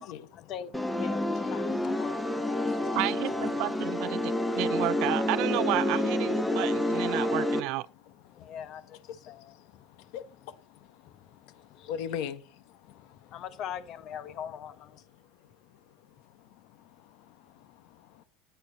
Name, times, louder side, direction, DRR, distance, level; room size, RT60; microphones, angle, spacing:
voice 1, 0.0-3.0 4.2-4.3 7.0-7.1 8.3-10.1 11.0-11.9 12.9-15.0, left 9 dB, 40° left, 1.1 m, -43 dB
sound 1, 0.7-7.6, left 1 dB, 5° left, 1.1 m, -28 dB
voice 2, 2.4-3.0 4.2-4.6 8.3-8.5 9.1-13.4 15.2-18.2, left 8 dB, 65° left, 1.4 m, -44 dB
voice 3, 2.9-7.9, right 20 dB, 55° right, 0.5 m, -32 dB
14.0 x 9.2 x 4.1 m
cardioid pair, 165°, 0 cm